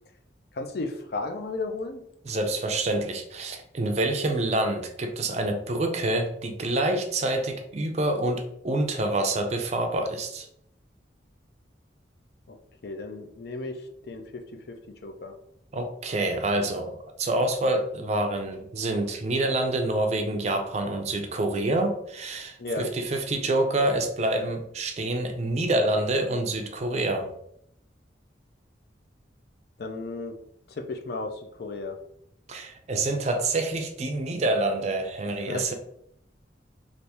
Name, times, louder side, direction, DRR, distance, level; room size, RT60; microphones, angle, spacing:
voice 1, 0.5-2.0 12.5-12.6 12.8-13.8 14.1-15.3 22.6-22.9 29.8-30.3 30.7-32.0 35.5-35.7, left 3 dB, 60° left, 5 dB, 0.4 m, -34 dB
voice 2, 2.2-10.5 15.7-27.3 32.5-35.7, right 2 dB, 35° right, 5 dB, 0.4 m, -27 dB
3.4 x 2.5 x 2.8 m, 0.73 s
head